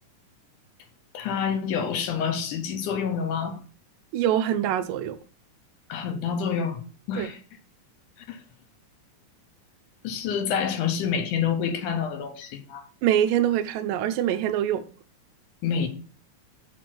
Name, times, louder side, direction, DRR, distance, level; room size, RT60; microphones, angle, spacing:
voice 1, 1.1-3.6 5.9-6.8 7.1-7.4 8.3-8.4 10.0-12.8 15.6-15.9, left 7 dB, 75° left, 2.3 m, -27 dB
voice 2, 4.1-5.2 7.2-7.3 13.0-14.8, right 11 dB, 80° right, 2.2 m, -24 dB
6.5 x 5.1 x 5.9 m
omnidirectional pair, 3.9 m